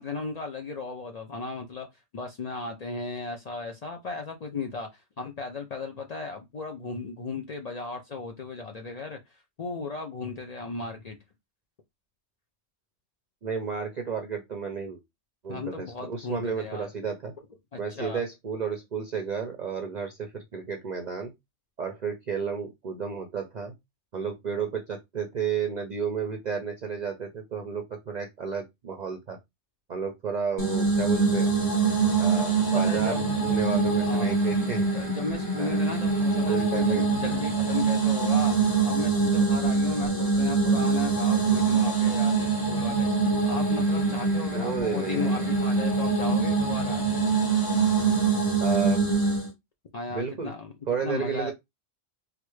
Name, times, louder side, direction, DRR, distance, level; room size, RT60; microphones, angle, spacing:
voice 1, 0.0-1.9 2.1-9.2 9.6-11.2 15.5-16.9 17.7-18.2 32.7-33.2 34.1-34.3 34.9-38.5 38.8-43.1 43.4-47.1 49.9-50.7 51.0-51.5, left 4 dB, 55° left, 0.4 m, -35 dB
voice 2, 13.4-15.0 15.4-17.3 17.8-21.3 21.8-23.7 24.1-29.4 29.9-31.5 32.2-34.9 35.6-35.8 36.5-37.4 44.5-45.4 48.6-49.0 50.1-50.5 50.9-51.5, right 6 dB, 50° right, 0.6 m, -32 dB
sound 1, 30.6-49.5, right 4 dB, 20° left, 1.1 m, -24 dB
3.2 x 2.5 x 3.0 m
omnidirectional pair, 1.2 m